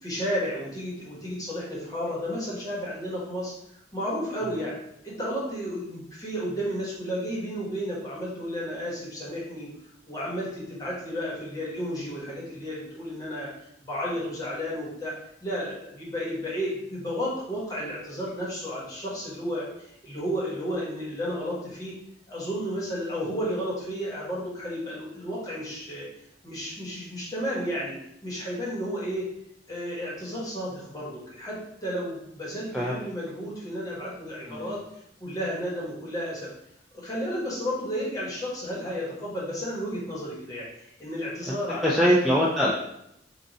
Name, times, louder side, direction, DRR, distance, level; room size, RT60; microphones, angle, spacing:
voice 1, 0.0-3.5 3.9-4.8 5.0-9.7 10.1-15.1 15.4-21.9 22.3-26.1 26.4-27.9 28.2-29.3 29.7-34.8 35.2-36.5 36.9-42.1, equal, 20° left, -6 dB, 1.3 m, -32 dB
voice 2, 41.5-42.7, equal, ahead, -6 dB, 0.4 m, -23 dB
3.7 x 2.5 x 4.0 m, 0.78 s
head